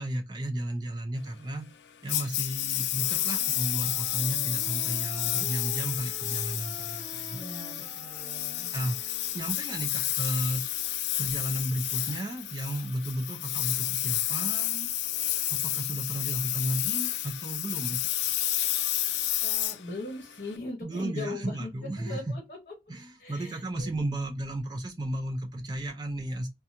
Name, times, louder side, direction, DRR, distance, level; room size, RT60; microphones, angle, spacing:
voice 1, 0.0-1.7 2.0-7.4 7.9-8.0 8.7-9.0 9.3-10.6 11.2-14.9 15.5-18.1 20.8-22.3 22.9-26.5, right 1 dB, 25° right, 0.4 m, -33 dB
Engine, 2.1-20.5, left 13 dB, 80° left, 0.4 m, -30 dB
Wind instrument woodwind instrument, 2.9-9.9, left 1 dB, 15° left, 1.1 m, -48 dB
voice 2, 7.3-8.7 19.4-21.7 22.0-22.7 23.2-24.1, left 2 dB, 45° left, 0.9 m, -40 dB
2.9 x 2.2 x 2.5 m
head